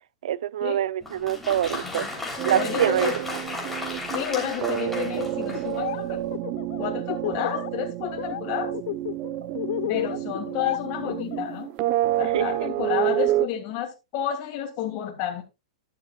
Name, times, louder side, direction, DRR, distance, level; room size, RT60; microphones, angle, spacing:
voice 1, 0.2-2.1 2.4-3.2 12.3-12.7, right 11 dB, 70° right, 0.5 m, -25 dB
Applause, 1.0-5.9, left 2 dB, 5° left, 3.3 m, -34 dB
sound 1, 2.4-13.5, right 14 dB, 40° right, 0.8 m, -29 dB
voice 2, 2.5-3.2 4.1-6.2 6.8-8.7 9.9-11.7 12.2-15.4, left 10 dB, 45° left, 2.7 m, -30 dB
Laughter, 5.5-6.0 6.3-7.7 8.0-8.4 8.7-11.6, left 14 dB, 60° left, 0.5 m, -32 dB
11.5 x 11.0 x 2.4 m
hypercardioid pair, 130°, 4 cm